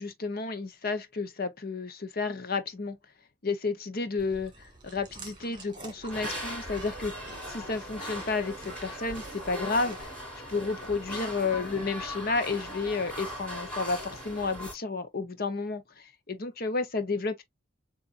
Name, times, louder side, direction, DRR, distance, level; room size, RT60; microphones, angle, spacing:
voice 1, 0.0-3.0 3.4-10.1 10.5-17.4, left 4 dB, 45° left, 0.8 m, -32 dB
Chewing mastication, 4.2-10.0, right 2 dB, 25° right, 1.9 m, -49 dB
sound 1, 6.1-14.7, equal, 5° left, 2.8 m, -39 dB
6.9 x 2.5 x 2.5 m
head